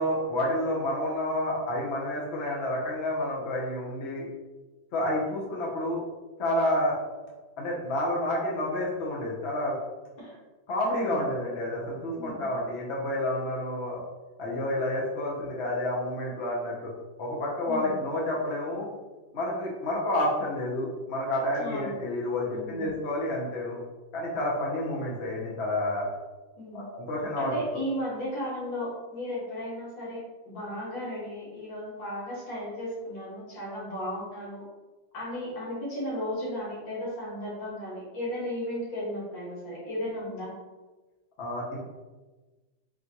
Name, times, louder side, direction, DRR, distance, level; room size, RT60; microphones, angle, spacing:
voice 1, 0.0-4.3 4.9-6.0 6.4-7.0 7.6-9.8 10.7-14.0 14.4-16.9 17.2-18.9 19.3-23.8 24.1-26.1 26.7-27.5 41.4-41.8, left 1 dB, 50° left, -3 dB, 0.8 m, -29 dB
voice 2, 10.9-11.3 12.1-12.5 17.6-18.0 21.6-22.0 22.5-22.8 26.6-26.8 27.4-34.6 35.1-40.5, equal, 70° left, -7 dB, 2.3 m, -35 dB
4.4 x 3.3 x 2.9 m, 1.2 s
omnidirectional pair, 2.1 m